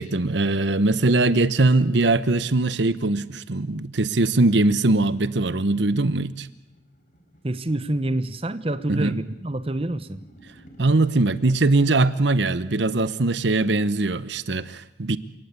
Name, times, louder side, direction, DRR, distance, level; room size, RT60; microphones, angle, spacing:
voice 1, 0.0-6.5 8.9-9.2 10.8-15.2, right 2 dB, 70° right, 0.9 m, -21 dB
sound 1, 5.6-11.0, equal, 45° left, 4.4 m, -53 dB
voice 2, 7.4-10.2, right 1 dB, 30° right, 1.0 m, -27 dB
29.5 x 18.0 x 8.3 m
head